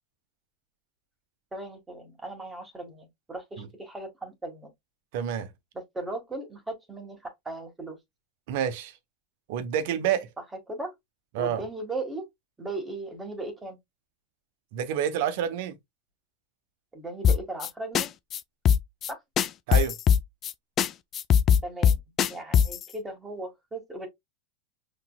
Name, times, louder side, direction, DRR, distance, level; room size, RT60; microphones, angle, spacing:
voice 1, 1.5-4.7 5.9-8.0 10.7-10.9 11.4-12.3 12.6-13.8 16.9-18.1 19.1-19.2 21.6-22.0 22.3-24.1, right 2 dB, 15° right, 1.7 m, -37 dB
voice 2, 5.1-5.5 8.5-8.9 9.5-10.3 11.3-11.6 14.7-15.7 19.7-19.9, right 9 dB, 60° right, 0.9 m, -28 dB
sound 1, 17.2-17.7 17.9-18.1 18.3-18.4 18.7-19.1 19.4-20.5 20.8-20.9 21.1-22.8, left 8 dB, 35° left, 0.4 m, -20 dB
5.7 x 3.2 x 2.3 m
hypercardioid pair, 90°, 0 cm